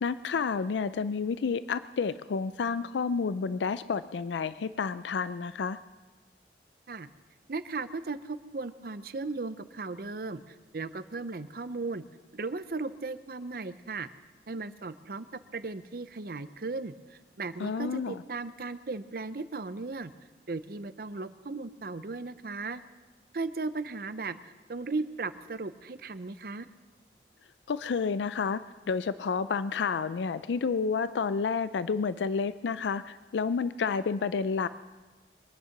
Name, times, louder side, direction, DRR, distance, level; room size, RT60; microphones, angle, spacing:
voice 1, 0.0-5.8 17.6-18.2 27.7-34.7, left 5 dB, 90° left, 14 dB, 0.4 m, -30 dB
voice 2, 7.5-12.0 12.3-14.1 14.5-20.1 20.5-22.8 23.3-26.7, right 3 dB, 55° right, 13 dB, 0.6 m, -36 dB
23.5 x 9.4 x 5.9 m, 1.3 s
head